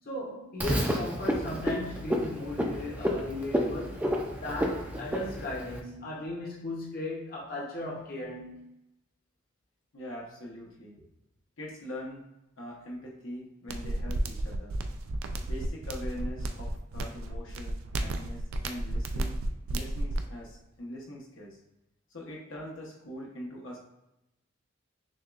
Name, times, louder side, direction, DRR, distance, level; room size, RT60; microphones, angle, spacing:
voice 1, 0.1-8.7, left 1 dB, 45° left, -4 dB, 0.8 m, -37 dB
Frog, 0.6-5.8, equal, 10° right, 0.4 m, -31 dB
voice 2, 9.9-11.1 11.6-12.2 12.6-14.8 15.4-19.4 19.7-21.6 22.1-23.8, left 1 dB, 75° left, -2 dB, 0.9 m, -42 dB
sound 1, 13.7-20.3, right 1 dB, 80° right, 0.4 m, -33 dB
6.2 x 2.3 x 2.4 m, 0.90 s
head